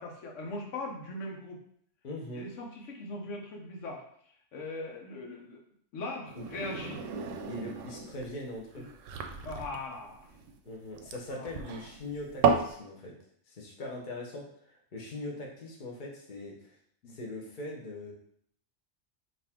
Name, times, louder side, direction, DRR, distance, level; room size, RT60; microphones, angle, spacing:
voice 1, 0.0-1.6 2.3-5.6 5.9-7.0 8.8-8.9 9.4-10.3 11.3-11.5 17.0-17.2, left 2 dB, 80° left, 1 dB, 1.1 m, -40 dB
voice 2, 2.0-2.4 6.4-6.5 7.5-8.8 10.6-13.1 13.5-16.8 17.1-18.1, left 1 dB, 45° left, -1 dB, 1.0 m, -41 dB
sound 1, 6.3-12.7, right 6 dB, 90° right, 0.9 m, -33 dB
5.2 x 2.6 x 3.5 m, 0.65 s
omnidirectional pair, 1.3 m